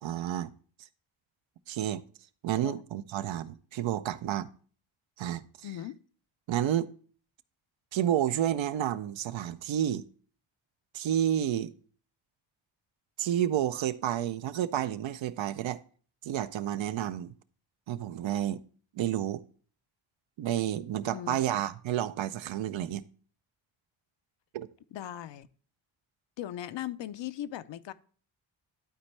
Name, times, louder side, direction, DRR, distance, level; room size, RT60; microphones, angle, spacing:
voice 1, 0.0-0.5 1.7-2.0 2.4-4.5 5.2-5.4 6.5-6.9 7.9-10.1 10.9-11.7 13.2-15.8 16.2-17.3 17.9-18.6 18.9-19.4 20.4-23.0 24.5-24.7, right 11 dB, 70° right, 0.6 m, -30 dB
voice 2, 5.6-6.0 21.1-21.4 24.9-25.5 26.4-27.9, left 12 dB, 65° left, 0.6 m, -38 dB
11.5 x 4.4 x 3.2 m
cardioid pair, 100°, 48 cm